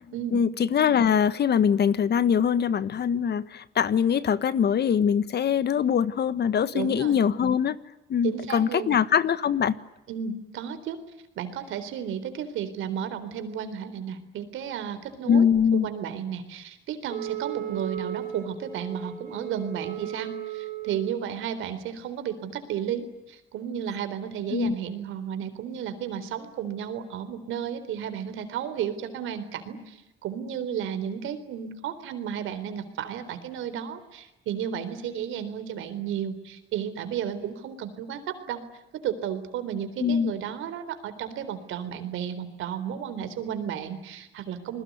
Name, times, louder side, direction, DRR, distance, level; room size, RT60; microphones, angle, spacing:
voice 1, 0.3-7.8 8.1-9.7 15.3-15.9 24.5-24.7 40.0-40.3, left 7 dB, 55° left, 15 dB, 1.5 m, -23 dB
voice 2, 6.7-7.2 8.2-9.0 10.1-11.0 11.4-38.6 38.9-44.8, right 8 dB, 85° right, 11 dB, 3.9 m, -33 dB
Wind instrument woodwind instrument, 17.1-21.2, right 10 dB, 45° right, 4.6 m, -36 dB
28.5 x 21.0 x 9.5 m, 0.90 s
cardioid pair, 90°, 20 cm